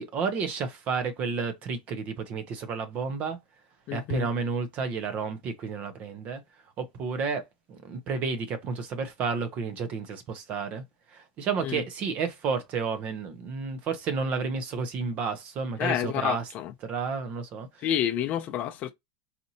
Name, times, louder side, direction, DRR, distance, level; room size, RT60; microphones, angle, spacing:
voice 1, 0.0-3.4 3.9-6.4 6.8-10.8 11.1-16.5 16.8-17.7, right 5 dB, 35° right, 0.8 m, -31 dB
voice 2, 3.9-4.3 11.6-11.8 15.8-16.7 17.8-18.9, left 10 dB, 35° left, 0.4 m, -29 dB
4.2 x 2.6 x 2.7 m
supercardioid pair, 145°, 4 cm